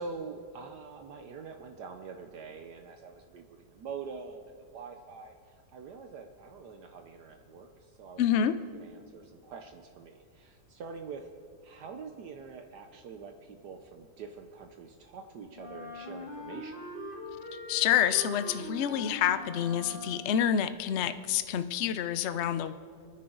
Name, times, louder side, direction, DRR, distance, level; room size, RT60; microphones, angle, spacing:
voice 1, 0.0-8.2 8.8-11.3 11.6-16.8, right 5 dB, 70° right, 5 dB, 1.3 m, -45 dB
voice 2, 8.2-8.5 17.7-22.7, left 9 dB, 80° left, 12 dB, 0.6 m, -28 dB
Wind instrument woodwind instrument, 15.5-20.6, left 1 dB, 30° left, 3.0 m, -42 dB
29.0 x 10.0 x 3.9 m, 2.2 s
omnidirectional pair, 2.0 m